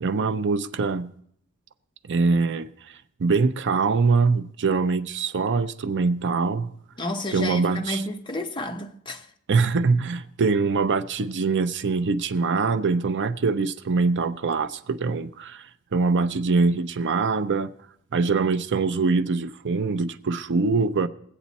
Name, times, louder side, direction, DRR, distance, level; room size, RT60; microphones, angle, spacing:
voice 1, 0.0-1.1 2.1-2.7 3.2-6.7 7.3-8.0 9.5-17.7 18.1-21.1, right 4 dB, 55° right, 0.5 m, -23 dB
voice 2, 7.0-9.3, left 1 dB, 20° left, 0.9 m, -31 dB
21.0 x 8.1 x 4.1 m
head